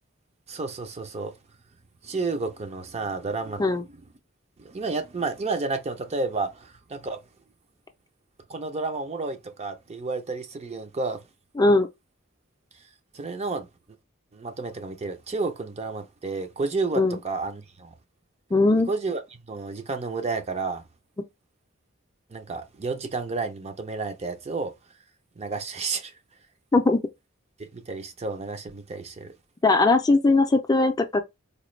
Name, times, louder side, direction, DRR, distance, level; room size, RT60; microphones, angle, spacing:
voice 1, 0.5-1.4 2.0-4.1 4.6-7.2 8.5-11.2 13.1-13.7 14.3-17.9 18.9-19.2 19.5-20.8 22.3-24.7 25.4-26.1 27.6-29.3, right 3 dB, 35° right, 0.5 m, -31 dB
voice 2, 11.6-11.9 17.0-17.2 18.5-18.9 26.7-27.0 29.6-31.2, left 2 dB, 20° left, 0.4 m, -19 dB
4.1 x 2.2 x 3.1 m
head